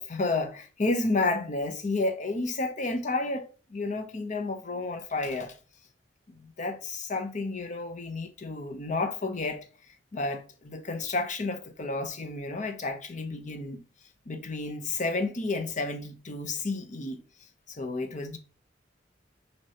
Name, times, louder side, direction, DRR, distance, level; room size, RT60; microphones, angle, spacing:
voice 1, 0.0-5.6 6.3-9.7 10.1-13.8 14.3-17.2 17.7-18.4, left 3 dB, 40° left, 0.7 m, -31 dB
6.3 x 2.9 x 2.8 m
head